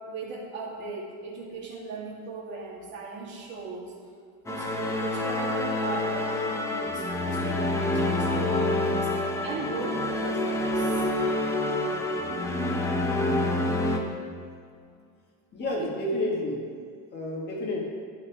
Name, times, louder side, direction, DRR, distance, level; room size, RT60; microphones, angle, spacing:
voice 1, 0.0-3.9 4.5-11.1 15.6-15.9, right 4 dB, 35° right, -2 dB, 2.5 m, -38 dB
sound 1, 4.5-14.0, left 2 dB, 10° left, 0.8 m, -27 dB
voice 2, 15.5-16.7 17.1-17.8, left 1 dB, 30° left, -1 dB, 1.8 m, -31 dB
12.0 x 9.5 x 4.8 m, 2.2 s
supercardioid pair, 155°, 32 cm